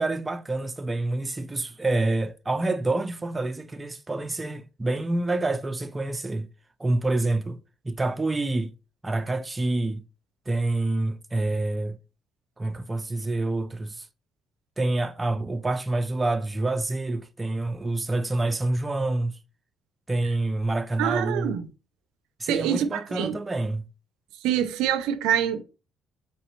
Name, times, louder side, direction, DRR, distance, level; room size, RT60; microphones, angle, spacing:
voice 1, 0.0-6.5 6.8-7.6 7.8-8.7 9.0-10.0 10.5-12.0 12.6-14.0 14.8-19.3 20.1-21.6 22.4-23.8, right 2 dB, 20° right, 0.5 m, -27 dB
voice 2, 21.0-21.7 22.5-23.4 24.4-25.6, right 10 dB, 90° right, 0.4 m, -25 dB
4.1 x 3.6 x 3.0 m
cardioid pair, 80°, 0 cm